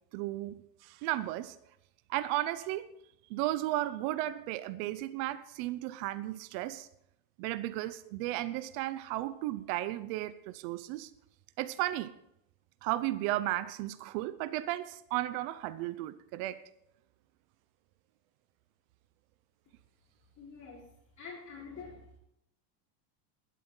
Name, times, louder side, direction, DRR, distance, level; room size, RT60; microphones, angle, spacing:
voice 1, 0.1-1.6 2.1-2.9 3.3-6.9 7.4-11.1 11.6-12.1 12.8-16.6, right 15 dB, 65° right, 0.8 m, -34 dB
voice 2, 20.3-20.9 21.2-22.2, left 5 dB, 35° left, 4.0 m, -47 dB
20.5 x 8.4 x 3.9 m
supercardioid pair, 135°, 47 cm